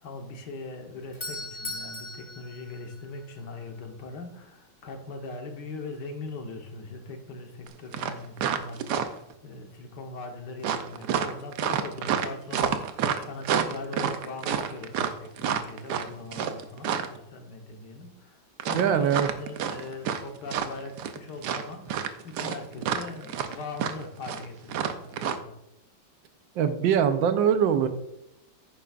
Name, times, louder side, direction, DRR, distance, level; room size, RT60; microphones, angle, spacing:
voice 1, 0.0-25.6, left 3 dB, 65° left, 3 dB, 1.8 m, -40 dB
Doorbell, 0.8-3.6, left 2 dB, 15° left, 1.2 m, -39 dB
sound 1, 7.7-7.8 7.9-9.3 10.6-17.2 18.6-20.2 20.5-21.2 21.4-25.4, right 8 dB, 70° right, 1.2 m, -28 dB
voice 2, 18.7-19.3 26.5-27.9, right 8 dB, 85° right, 9 dB, 1.5 m, -22 dB
10.0 x 9.2 x 2.5 m, 0.82 s
omnidirectional pair, 2.0 m